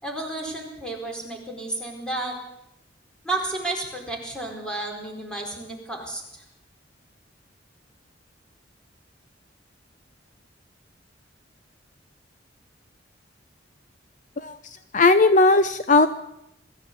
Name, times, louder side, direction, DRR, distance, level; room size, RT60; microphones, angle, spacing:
voice 1, 0.0-2.3 3.2-6.4, right 2 dB, 5° left, 0 dB, 4.5 m, -32 dB
voice 2, 14.9-16.1, left 3 dB, 40° left, 11 dB, 0.7 m, -17 dB
22.0 x 14.0 x 8.4 m, 0.85 s
head